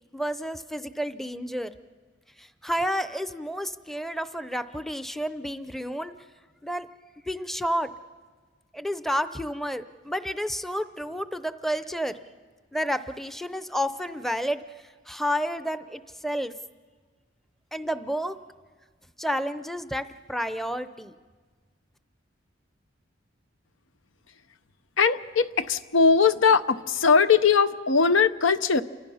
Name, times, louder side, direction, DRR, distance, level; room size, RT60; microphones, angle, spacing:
voice 1, 0.1-1.7 2.4-6.1 6.6-6.9 7.3-7.9 8.7-12.2 12.7-14.6 15.1-16.5 17.7-18.4 19.2-21.2, equal, ahead, 11 dB, 0.6 m, -30 dB
voice 2, 25.0-28.8, left 5 dB, 85° left, 12 dB, 0.8 m, -20 dB
29.0 x 25.0 x 5.6 m, 1.5 s
head